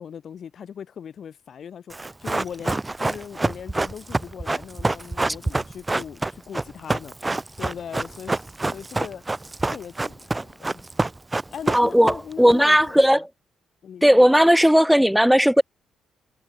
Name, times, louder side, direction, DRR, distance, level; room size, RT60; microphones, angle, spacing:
voice 1, 0.0-7.3 7.6-9.2 9.6-10.9 11.5-13.2 13.8-14.2, left 8 dB, 55° left, 3.4 m, -39 dB
Run, 1.9-12.5 12.8-12.9, right 2 dB, 15° right, 1.0 m, -26 dB
voice 2, 11.7-13.3 14.0-15.6, equal, ahead, 1.4 m, -16 dB
cardioid pair, 90°, 0 cm